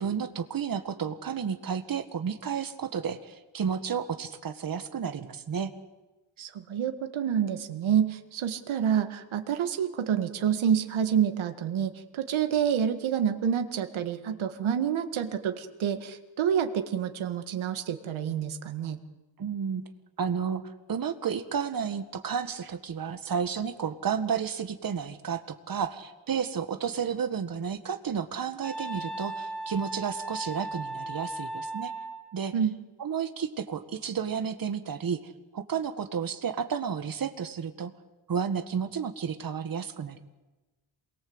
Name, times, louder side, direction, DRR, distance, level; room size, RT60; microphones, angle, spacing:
voice 1, 0.0-5.7 19.4-19.8 20.2-20.6 20.9-31.9 32.3-32.5 33.0-37.9 38.3-40.2, right 7 dB, 45° right, 8 dB, 1.9 m, -32 dB
voice 2, 6.4-19.0 32.5-32.7, right 8 dB, 85° right, 7 dB, 2.0 m, -28 dB
Wind instrument woodwind instrument, 28.6-32.3, right 2 dB, ahead, 4.4 m, -36 dB
28.0 x 22.0 x 8.1 m, 1.1 s
wide cardioid pair, 150°, 46 cm